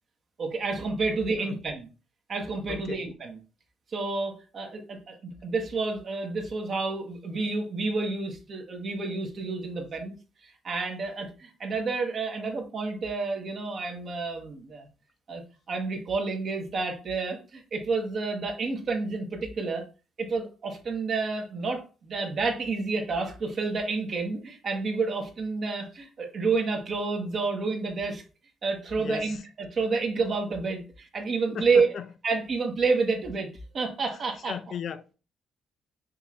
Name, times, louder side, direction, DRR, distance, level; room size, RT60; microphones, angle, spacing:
voice 1, 0.4-1.9 2.3-3.4 3.9-10.1 10.4-14.9 15.3-15.4 15.7-19.8 20.2-28.2 28.6-31.9 32.2-33.5 33.7-34.5, right 4 dB, 50° right, 1.2 m, -29 dB
voice 2, 2.7-3.0 29.0-29.4 31.5-32.1 34.4-35.1, left 8 dB, 60° left, 0.4 m, -37 dB
5.3 x 3.2 x 2.5 m
cardioid pair, 90°, 0 cm